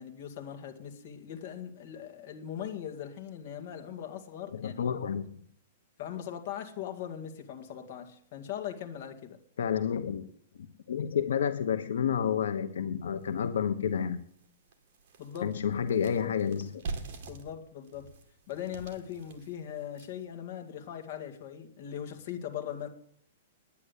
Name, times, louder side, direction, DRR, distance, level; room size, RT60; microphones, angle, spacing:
voice 1, 0.0-4.7 6.0-9.4 15.2-15.6 17.3-18.1 18.5-22.9, left 9 dB, 45° left, 2.1 m, -40 dB
voice 2, 4.5-5.3 9.6-10.2 10.6-14.2 15.4-16.8, left 8 dB, 85° left, 1.1 m, -30 dB
sound 1, 13.2-13.3 13.8-13.9 14.3-20.3, right 4 dB, 45° right, 2.4 m, -44 dB
10.0 x 9.9 x 8.3 m
hypercardioid pair, 160°, 0 cm